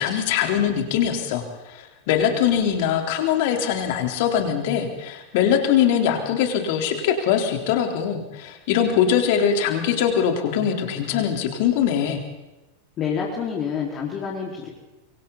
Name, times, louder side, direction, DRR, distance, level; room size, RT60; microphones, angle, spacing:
voice 1, 0.0-12.2, left 8 dB, 50° left, 4 dB, 3.9 m, -22 dB
voice 2, 13.0-14.7, left 7 dB, 30° left, -3 dB, 4.7 m, -27 dB
27.0 x 24.0 x 4.1 m, 1.1 s
figure-of-eight pair, 90°, 0 cm